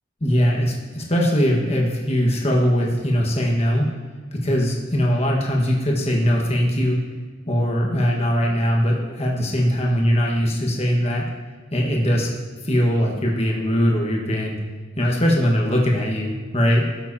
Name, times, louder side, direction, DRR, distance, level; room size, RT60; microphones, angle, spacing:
voice 1, 0.2-3.9 4.3-7.0 7.5-11.2 11.7-12.3 12.6-14.6 15.0-16.9, equal, 30° left, -1 dB, 1.5 m, -20 dB
14.0 x 7.8 x 2.8 m, 1.5 s
head